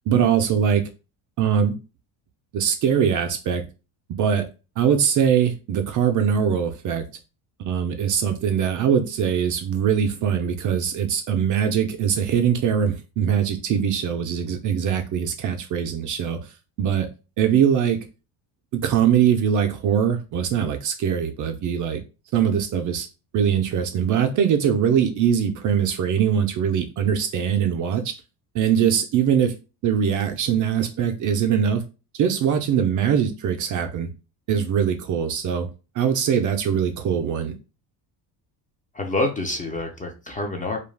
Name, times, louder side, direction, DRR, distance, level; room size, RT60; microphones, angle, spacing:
voice 1, 0.1-0.8 1.4-1.7 2.5-3.6 4.2-4.4 4.8-7.0 7.6-16.4 16.8-17.1 17.4-18.1 18.8-22.0 22.3-23.1 23.3-28.1 28.5-29.5 29.8-31.9 32.1-34.1 34.5-35.7 36.0-37.5, right 8 dB, 45° right, 6 dB, 0.4 m, -22 dB
voice 2, 38.9-40.8, left 2 dB, 20° left, 3 dB, 0.5 m, -27 dB
2.3 x 2.3 x 3.2 m, 0.31 s
cardioid pair, 100°, 46 cm